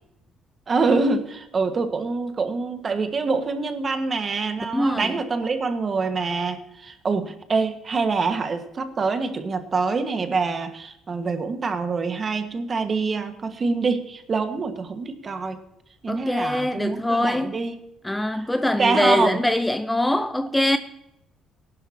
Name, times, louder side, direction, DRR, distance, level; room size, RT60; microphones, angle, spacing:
voice 1, 0.7-15.6 16.0-17.7 18.7-19.4, right 4 dB, 35° right, 1.5 m, -25 dB
voice 2, 4.7-5.1 16.1-17.6 18.0-20.8, left 1 dB, 5° left, 0.6 m, -23 dB
19.0 x 11.0 x 2.8 m
cardioid pair, 115°, 0 cm